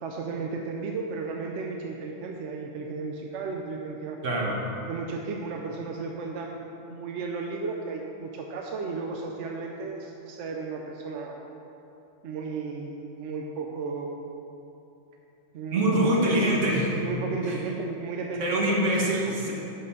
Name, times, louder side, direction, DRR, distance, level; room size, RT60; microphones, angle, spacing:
voice 1, 0.0-4.2 4.9-6.6 6.9-11.4 12.2-14.2 15.5-16.7 17.0-19.1, right 4 dB, 75° right, 1 dB, 1.0 m, -34 dB
voice 2, 4.2-4.6 15.7-16.9 17.4-17.6 18.4-19.5, right 1 dB, 90° right, -3 dB, 1.7 m, -24 dB
10.5 x 3.9 x 6.6 m, 2.8 s
omnidirectional pair, 1.3 m